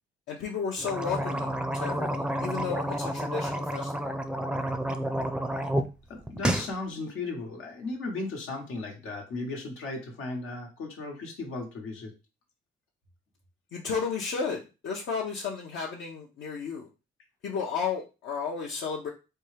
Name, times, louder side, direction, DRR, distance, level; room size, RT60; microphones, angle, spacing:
voice 1, 0.3-4.2 13.7-16.9 17.4-19.1, left 5 dB, 70° left, -2 dB, 0.7 m, -33 dB
sound 1, 0.8-5.9 6.2-6.7, right 1 dB, 5° right, 0.4 m, -30 dB
voice 2, 6.1-12.1, left 3 dB, 90° left, 1 dB, 1.2 m, -36 dB
4.3 x 2.3 x 3.2 m, 0.30 s
cardioid pair, 90°, 20 cm